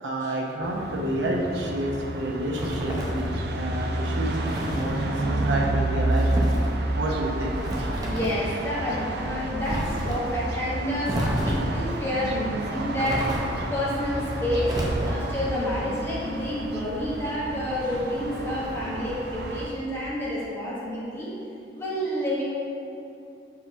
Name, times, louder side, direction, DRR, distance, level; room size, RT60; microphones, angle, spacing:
voice 1, 0.0-6.5 7.0-7.6, right 1 dB, 80° right, -1 dB, 0.8 m, -29 dB
sound 1, 0.6-19.7, right 2 dB, 60° right, 0.4 m, -30 dB
sound 2, 2.5-3.3 4.4-4.9 6.1-6.7 7.6-8.4 9.6-10.2 11.1-11.8 13.0-13.7 14.6-15.4, equal, 20° right, 0.7 m, -30 dB
voice 2, 8.0-13.3 13.6-14.7 15.1-21.3 21.7-22.4, left 1 dB, 15° left, -7 dB, 1.1 m, -29 dB
4.8 x 3.4 x 5.6 m, 2.7 s
head